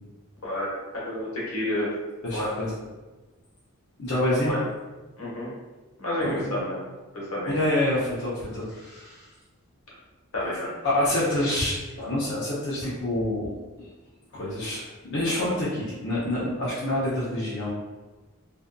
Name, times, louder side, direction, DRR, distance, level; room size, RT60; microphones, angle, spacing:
voice 1, 0.4-1.9 2.3-2.5 4.4-4.6 5.2-5.5 6.0-6.8 7.1-7.5 10.3-10.7, left 1 dB, 85° left, -6 dB, 0.9 m, -30 dB
voice 2, 2.2-2.7 4.0-4.6 6.2-6.6 7.5-9.3 10.8-13.5 13.8-13.9 14.3-17.7, left 1 dB, 55° left, -8 dB, 0.5 m, -27 dB
2.6 x 2.4 x 2.2 m, 1.2 s
head